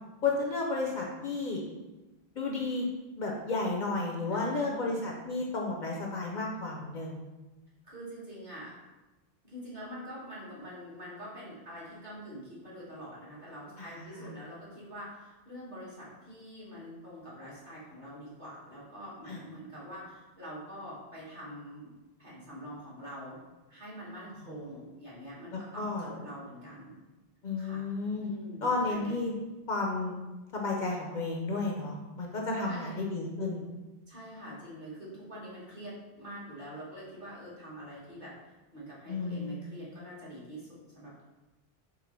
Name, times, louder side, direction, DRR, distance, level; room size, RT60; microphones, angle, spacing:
voice 1, 0.2-1.6 2.3-2.9 3.2-7.2 13.8-13.9 14.1-14.3 19.3-19.4 25.7-26.1 27.4-28.3 28.6-29.3 29.7-30.1 30.5-33.7 39.1-39.6, left 3 dB, 55° left, -1 dB, 0.7 m, -32 dB
voice 2, 4.3-5.0 7.8-8.7 9.4-21.9 22.2-23.4 23.7-26.9 27.6-29.2 32.6-33.0 34.1-38.3 38.7-41.2, equal, 50° right, -7 dB, 1.7 m, -45 dB
4.0 x 3.1 x 4.2 m, 1.1 s
omnidirectional pair, 1.0 m